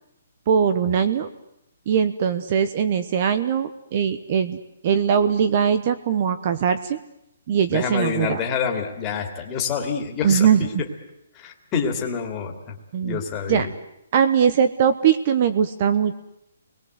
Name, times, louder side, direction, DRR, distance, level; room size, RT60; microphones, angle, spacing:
voice 1, 0.5-1.3 1.9-7.0 7.5-8.4 10.2-10.8 12.9-13.2 13.5-13.7 14.1-16.1, right 7 dB, 30° right, 11 dB, 1.0 m, -21 dB
voice 2, 7.7-10.5 11.3-12.7 13.0-13.7, left 6 dB, 15° left, 3 dB, 2.7 m, -27 dB
28.5 x 21.5 x 8.1 m, 0.82 s
hypercardioid pair, 175°, 0 cm